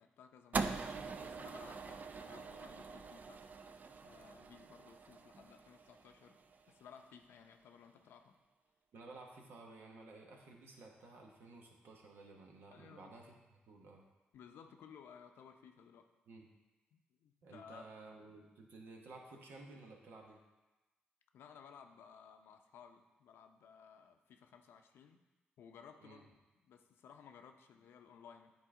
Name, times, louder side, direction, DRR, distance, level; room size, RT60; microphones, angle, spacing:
voice 1, 0.0-3.4 4.0-6.4 6.7-8.4 12.7-13.2 14.3-16.1 16.9-17.8 21.3-25.3 25.6-26.3 26.6-28.5, left 7 dB, 80° left, 6 dB, 0.6 m, -58 dB
sound 1, 0.5-6.9, right 4 dB, 45° right, 0.4 m, -43 dB
voice 2, 8.9-13.3 13.7-14.0 16.3-16.5 17.4-20.4 26.0-26.3, right 3 dB, 75° right, 0 dB, 1.2 m, -54 dB
9.4 x 4.1 x 3.6 m, 1.1 s
supercardioid pair, 60°, 4 cm